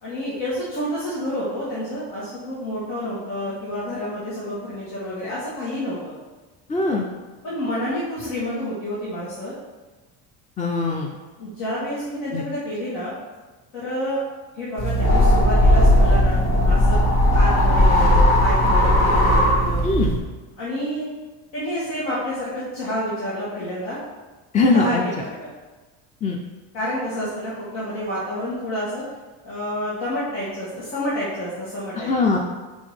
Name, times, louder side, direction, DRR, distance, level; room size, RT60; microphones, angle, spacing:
voice 1, 0.0-6.1 7.4-9.5 11.4-13.1 13.7-14.2 14.5-19.8 20.6-21.1 21.5-24.0 24.5-25.5 26.7-29.0 29.4-32.1, equal, 70° left, -9 dB, 2.0 m, -29 dB
voice 2, 6.7-7.0 10.6-11.1 12.3-12.4 19.8-20.1 24.5-25.0 26.2-26.4 31.9-32.4, left 3 dB, 20° left, 1 dB, 0.4 m, -20 dB
sound 1, 14.8-20.2, left 1 dB, 50° left, 1.7 m, -17 dB
5.1 x 3.8 x 4.9 m, 1.2 s
cardioid pair, 115°, 46 cm